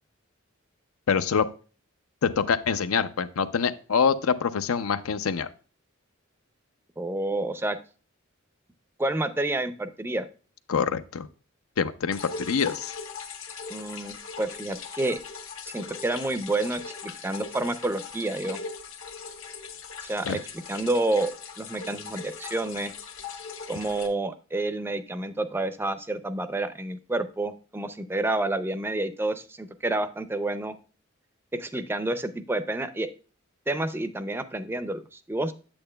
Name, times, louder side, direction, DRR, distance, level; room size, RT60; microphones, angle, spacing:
voice 1, 1.1-1.5 2.2-5.5 10.7-11.3 11.8-12.9 20.3-20.4, left 6 dB, 90° left, 12 dB, 0.5 m, -25 dB
voice 2, 7.0-7.8 9.0-10.3 13.7-15.2 15.7-18.6 20.0-20.4 20.7-21.3 21.6-22.9 23.7-30.7 31.5-33.1 33.7-35.5, right 2 dB, 10° right, 11 dB, 0.4 m, -29 dB
sound 1, 12.1-24.1, left 5 dB, 70° left, 1.1 m, -40 dB
8.7 x 7.9 x 2.2 m, 0.37 s
head